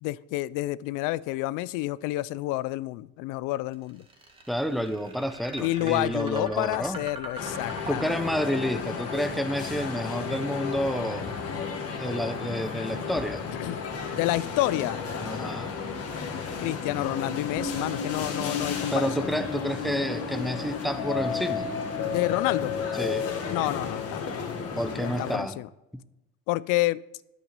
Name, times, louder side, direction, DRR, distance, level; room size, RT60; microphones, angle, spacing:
voice 1, 0.0-4.0 5.6-8.2 13.6-13.8 14.1-15.0 16.6-19.3 22.1-22.7 23.5-24.2 25.0-25.7 26.5-27.0, left 18 dB, 75° left, 20 dB, 0.5 m, -29 dB
sound 1, 3.7-19.9, right 1 dB, 15° right, 1.9 m, -45 dB
voice 2, 4.5-7.0 7.9-11.4 12.0-13.4 15.2-15.8 18.9-21.7 22.9-23.3 24.7-25.6, equal, ahead, 11 dB, 0.6 m, -29 dB
sound 2, 7.4-25.4, left 6 dB, 45° left, 1.9 m, -32 dB
9.1 x 8.2 x 5.3 m, 0.92 s
cardioid pair, 110°, 32 cm